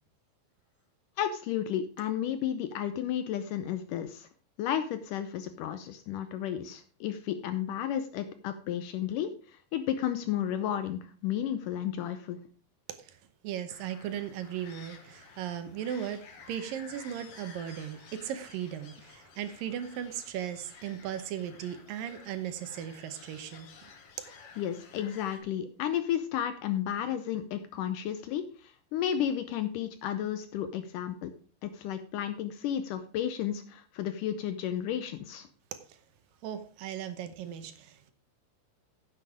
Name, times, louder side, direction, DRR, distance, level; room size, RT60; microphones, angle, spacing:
voice 1, 1.2-4.3 4.6-12.4 24.6-31.3 31.6-35.5, left 10 dB, 75° left, 2.0 m, -33 dB
voice 2, 13.4-23.7 36.4-38.1, right 10 dB, 75° right, 2.5 m, -37 dB
sound 1, 13.7-25.4, left 5 dB, 50° left, 1.9 m, -53 dB
9.8 x 7.6 x 4.9 m
omnidirectional pair, 4.3 m